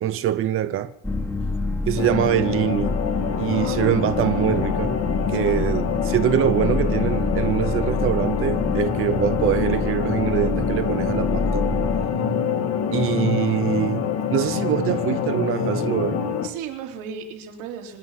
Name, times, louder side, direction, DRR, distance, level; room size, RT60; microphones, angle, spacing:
voice 1, 0.0-0.9 1.9-3.0 3.4-4.9 5.3-11.7 12.9-16.2, right 11 dB, 40° right, 0.7 m, -24 dB
sound 1, 1.0-12.1, left 2 dB, 5° left, 1.4 m, -27 dB
sound 2, 2.0-16.5, left 7 dB, 50° left, 1.8 m, -25 dB
voice 2, 5.3-5.6 16.4-18.0, right 7 dB, 90° right, 3.4 m, -36 dB
26.0 x 9.7 x 5.7 m
cardioid pair, 135°, 33 cm